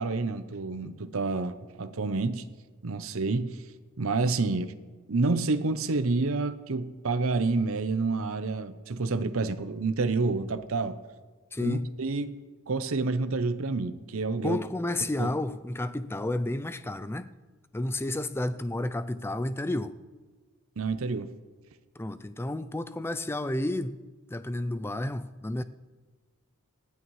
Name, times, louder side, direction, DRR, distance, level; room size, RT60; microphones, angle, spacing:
voice 1, 0.0-2.5 2.8-3.6 4.0-4.7 5.1-11.0 11.6-12.4 12.7-14.6 15.2-15.3 20.8-21.3, right 3 dB, 65° right, 0.7 m, -28 dB
voice 2, 11.5-11.9 14.4-17.3 17.7-20.0 22.0-24.0 24.3-25.6, left 1 dB, 10° left, 0.4 m, -31 dB
19.5 x 12.5 x 3.2 m
head